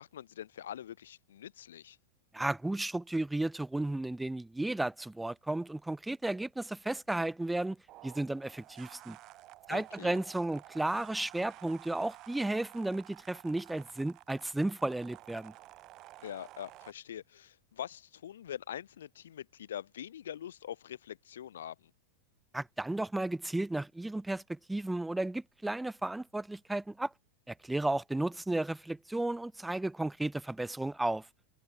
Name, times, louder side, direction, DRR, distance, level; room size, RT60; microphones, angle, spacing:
voice 1, 0.0-2.0 9.7-10.2 16.2-21.9, left 10 dB, 65° left, 4.5 m, -44 dB
voice 2, 2.3-7.8 8.0-9.2 9.7-15.5 22.5-27.1 27.5-31.2, right 2 dB, 5° right, 1.1 m, -33 dB
sound 1, 7.9-16.9, right 17 dB, 40° right, 2.0 m, -53 dB
figure-of-eight pair, 90°, 0 cm